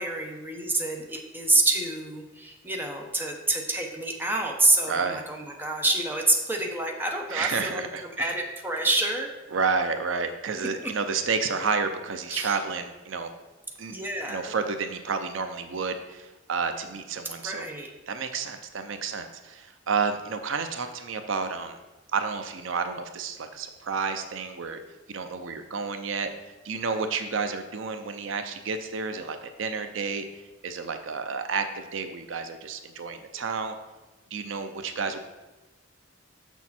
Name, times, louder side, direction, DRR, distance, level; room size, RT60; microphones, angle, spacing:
voice 1, 0.0-9.3 10.8-10.9 12.3-12.6 13.9-14.5 17.4-17.9, right 2 dB, 10° right, 1 dB, 0.9 m, -27 dB
voice 2, 4.9-5.2 7.3-8.3 9.5-13.3 13.8-13.9 14.3-17.7 18.1-21.8 22.1-24.8 25.1-26.3 26.6-30.2 30.6-33.8 34.3-35.2, right 5 dB, 70° right, 8 dB, 0.6 m, -30 dB
6.9 x 6.2 x 4.3 m, 1.1 s
head